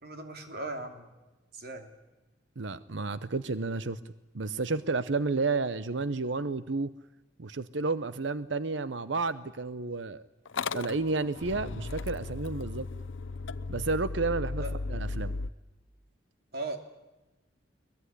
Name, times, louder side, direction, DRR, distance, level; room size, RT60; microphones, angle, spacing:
voice 1, 0.0-1.1 1.5-1.9 14.6-14.7 16.5-16.8, right 2 dB, 55° right, 5 dB, 3.1 m, -38 dB
voice 2, 2.6-4.0 4.3-6.9 7.4-10.2 10.7-12.9 13.7-14.6 14.9-15.3, right 3 dB, 70° right, 14 dB, 0.8 m, -31 dB
Motor vehicle (road) / Engine starting, 10.5-15.5, left 3 dB, 80° left, 0.8 m, -36 dB
22.5 x 20.5 x 10.0 m, 1.1 s
head